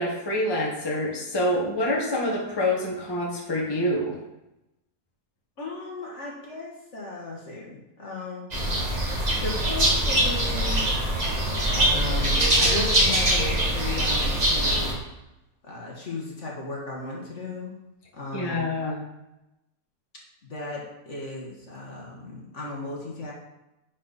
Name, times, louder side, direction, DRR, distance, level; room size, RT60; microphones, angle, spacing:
voice 1, 0.0-4.2 18.3-19.0, left 1 dB, 15° left, -3 dB, 1.2 m, -26 dB
voice 2, 5.6-8.5 9.4-10.9 11.7-15.0 15.6-17.8 18.1-18.7 20.4-23.3, left 2 dB, 50° left, -3 dB, 1.7 m, -35 dB
sound 1, 8.5-14.9, right 1 dB, 25° right, 1.5 m, -23 dB
9.7 x 4.2 x 4.1 m, 0.93 s
omnidirectional pair, 1.7 m